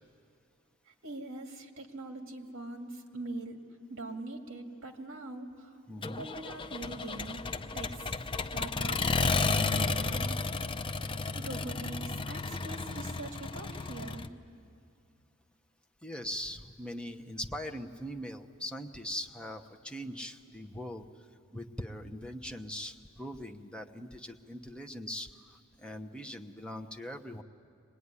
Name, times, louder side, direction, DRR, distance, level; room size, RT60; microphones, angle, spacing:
voice 1, 0.9-3.6 3.9-5.8 6.2-7.5 7.7-8.1 8.5-10.4 11.4-14.3, right 2 dB, 60° right, 4 dB, 2.1 m, -42 dB
voice 2, 5.9-6.3 16.0-21.1 21.5-27.4, equal, 5° left, 3 dB, 0.9 m, -41 dB
Accelerating revving vroom, 6.0-14.3, left 3 dB, 25° left, 0.5 m, -33 dB
24.0 x 20.0 x 9.7 m, 2.4 s
head